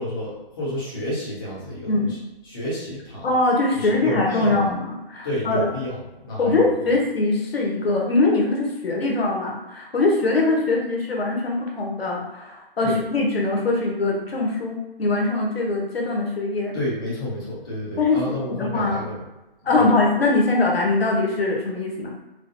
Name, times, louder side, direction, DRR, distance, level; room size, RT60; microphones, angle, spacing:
voice 1, 0.0-2.2 2.4-3.3 3.7-4.7 5.2-6.9 12.8-13.0 16.7-19.2 19.8-19.9, left 1 dB, 25° left, -9 dB, 1.1 m, -30 dB
voice 2, 3.2-5.6 6.4-16.8 18.0-19.0 19.6-22.1, left 2 dB, 85° left, -1 dB, 1.0 m, -22 dB
4.8 x 2.1 x 2.6 m, 1.0 s
hypercardioid pair, 165°, 30 cm